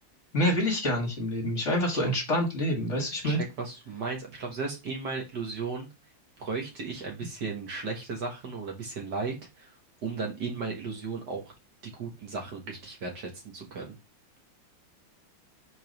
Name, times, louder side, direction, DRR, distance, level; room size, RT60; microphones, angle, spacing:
voice 1, 0.3-3.4, equal, 40° left, 1 dB, 1.6 m, -27 dB
voice 2, 3.2-5.9 6.4-9.7 10.0-11.5 11.8-14.0, right 4 dB, 60° right, 1 dB, 1.9 m, -35 dB
4.9 x 3.9 x 5.2 m, 0.26 s
omnidirectional pair, 2.1 m